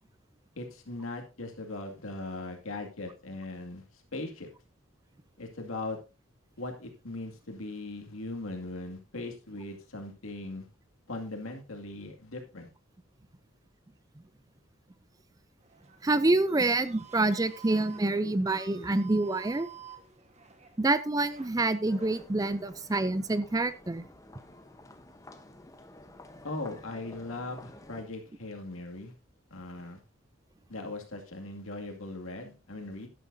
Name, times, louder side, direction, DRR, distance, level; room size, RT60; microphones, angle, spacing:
voice 1, 0.6-3.8 4.1-4.5 5.4-6.0 6.6-10.7 11.1-12.7 26.4-29.1 29.5-30.0 30.7-33.1, left 2 dB, 90° left, 3 dB, 2.2 m, -39 dB
sound 1, 15.6-22.3, right 8 dB, 30° right, 1.3 m, -52 dB
voice 2, 16.0-19.7 20.8-24.0, right 2 dB, 15° right, 14 dB, 0.4 m, -27 dB
sound 2, 21.8-28.0, left 2 dB, 15° left, 0.9 m, -52 dB
11.5 x 11.0 x 2.7 m, 0.30 s
head